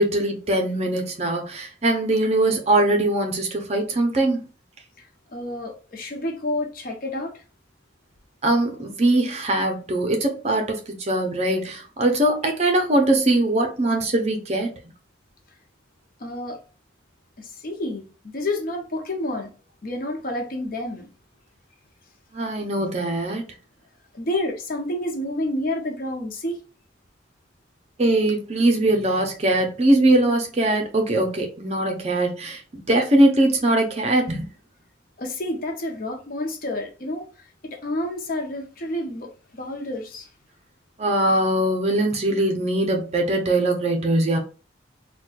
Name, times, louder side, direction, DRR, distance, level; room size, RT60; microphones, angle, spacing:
voice 1, 0.0-4.4 8.4-14.7 22.3-23.4 28.0-34.5 41.0-44.4, right 1 dB, 35° right, 0.6 m, -21 dB
voice 2, 5.3-7.4 16.2-16.6 17.4-19.5 19.8-21.1 24.1-26.6 35.2-40.3, left 1 dB, 45° left, 0.6 m, -29 dB
4.1 x 2.2 x 2.3 m
head